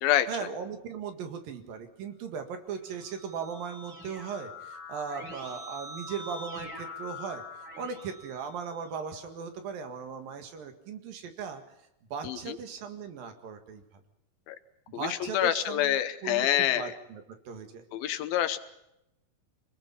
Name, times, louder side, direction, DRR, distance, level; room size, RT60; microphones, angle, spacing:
voice 1, 0.3-7.4 7.8-11.6 12.1-14.0 14.9-17.8, right 6 dB, 75° right, 6 dB, 3.7 m, -38 dB
Keyboard (musical), 2.6-9.2, left 2 dB, 35° right, 8.1 m, -44 dB
voice 2, 12.2-12.6 14.5-14.6 15.2-16.9 17.9-18.6, left 12 dB, 85° left, 11 dB, 2.9 m, -26 dB
27.0 x 20.5 x 5.7 m, 0.84 s
omnidirectional pair, 4.1 m